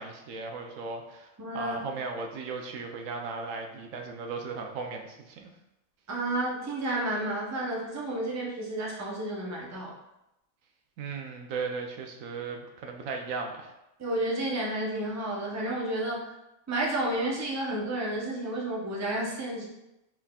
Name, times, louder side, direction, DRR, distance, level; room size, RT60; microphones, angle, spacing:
voice 1, 0.0-5.5 11.0-13.7, right 4 dB, 75° right, 3 dB, 0.9 m, -36 dB
voice 2, 1.4-1.8 6.1-9.9 14.0-16.3 16.7-19.7, right 1 dB, 15° right, -3 dB, 0.6 m, -31 dB
5.8 x 3.5 x 2.3 m, 0.90 s
omnidirectional pair, 1.4 m